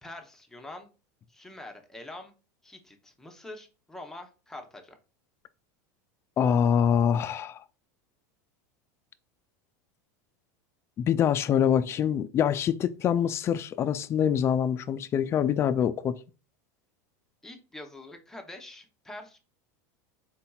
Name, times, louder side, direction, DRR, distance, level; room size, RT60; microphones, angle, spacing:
voice 1, 0.0-0.9 1.3-2.3 2.6-5.0 17.4-19.4, left 2 dB, 5° left, 0.8 m, -45 dB
voice 2, 6.4-7.6 11.0-16.2, left 8 dB, 30° left, 0.4 m, -25 dB
4.1 x 4.0 x 2.3 m
supercardioid pair, 125°, 9 cm